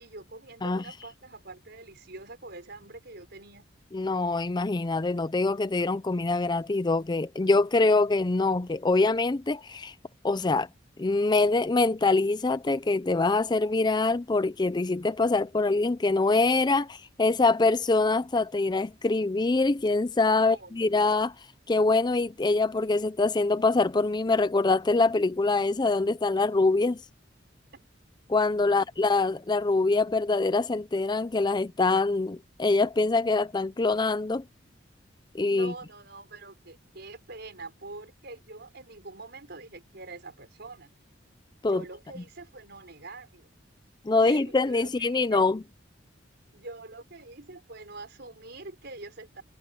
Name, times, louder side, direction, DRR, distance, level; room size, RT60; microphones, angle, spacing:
voice 1, 0.0-3.7 20.4-21.0 27.7-27.8 28.7-28.9 35.5-40.9 41.7-43.5 44.2-45.4 46.5-49.4, right 3 dB, 60° right, 5.6 m, -45 dB
voice 2, 3.9-9.9 10.2-10.7 11.0-21.3 21.7-27.0 28.3-34.4 35.3-35.7 41.6-41.8 44.0-45.6, left 3 dB, 25° left, 0.5 m, -24 dB
head